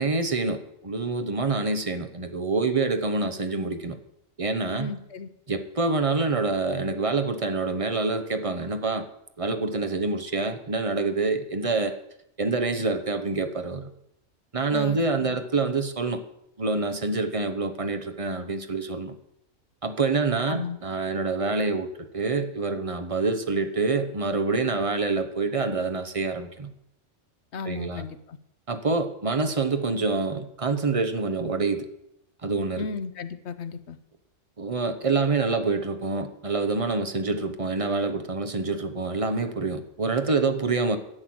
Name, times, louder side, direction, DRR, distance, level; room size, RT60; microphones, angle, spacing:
voice 1, 0.0-4.0 4.4-4.9 5.5-9.1 9.4-12.0 12.4-13.9 14.5-16.2 16.6-19.1 19.8-26.7 27.6-28.1 28.7-31.9 32.4-32.9 34.6-41.0, right 3 dB, 30° right, 8 dB, 1.0 m, -26 dB
voice 2, 4.7-5.3 14.7-15.4 20.5-20.8 27.5-28.4 32.8-34.0, left 5 dB, 70° left, 12 dB, 1.1 m, -34 dB
11.0 x 7.8 x 7.7 m, 0.79 s
omnidirectional pair, 1.2 m